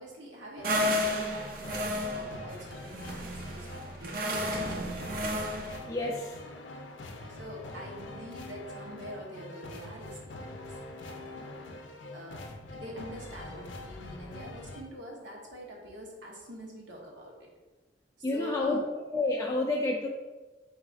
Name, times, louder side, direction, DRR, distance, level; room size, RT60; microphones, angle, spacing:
voice 1, 0.0-5.2 6.9-11.6 12.1-12.5 12.7-17.5 18.3-18.8, equal, 80° right, -1 dB, 0.9 m, -45 dB
sound 1, 0.6-14.8, left 2 dB, 85° left, 0.5 m, -44 dB
sound 2, 0.6-5.8, equal, 50° right, 0.4 m, -32 dB
voice 2, 5.9-6.4 18.2-18.8 19.1-20.1, left 2 dB, 15° left, -3 dB, 0.3 m, -29 dB
3.9 x 2.4 x 3.9 m, 1.2 s
head